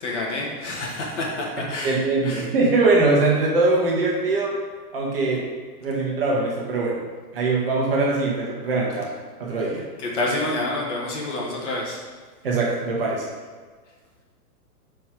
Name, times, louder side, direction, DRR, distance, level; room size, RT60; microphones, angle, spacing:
voice 1, 0.0-2.0 2.2-2.5 10.0-12.0, left 2 dB, 50° left, -2 dB, 1.4 m, -28 dB
voice 2, 1.8-4.5 4.9-5.4 5.8-7.0 7.3-9.1 9.4-9.8 12.4-13.3, right 3 dB, 35° right, -3 dB, 1.1 m, -22 dB
5.6 x 4.5 x 4.4 m, 1.5 s
hypercardioid pair, 180°, 47 cm